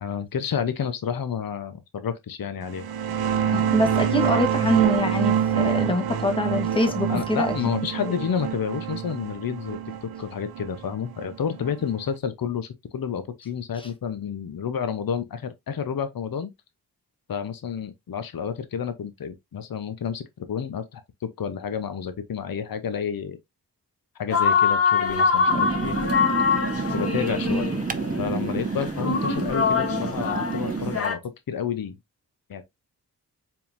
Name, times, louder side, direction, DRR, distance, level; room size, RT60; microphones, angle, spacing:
voice 1, 0.0-2.9 6.9-16.5 17.3-21.0 21.4-23.4 24.2-26.0 26.9-27.7 28.2-31.2 31.5-32.0 32.5-32.6, left 7 dB, 60° left, 0.8 m, -30 dB
sound 1, 2.7-12.0, right 8 dB, 65° right, 0.7 m, -26 dB
voice 2, 3.5-7.5 8.0-8.1 13.8-13.9 27.4-27.7, left 1 dB, 15° left, 1.3 m, -25 dB
sound 2, 24.3-31.1, left 5 dB, 35° left, 1.4 m, -24 dB
sound 3, 25.5-31.0, right 4 dB, 20° right, 0.6 m, -29 dB
4.5 x 3.7 x 2.6 m
cardioid pair, 55°, 39 cm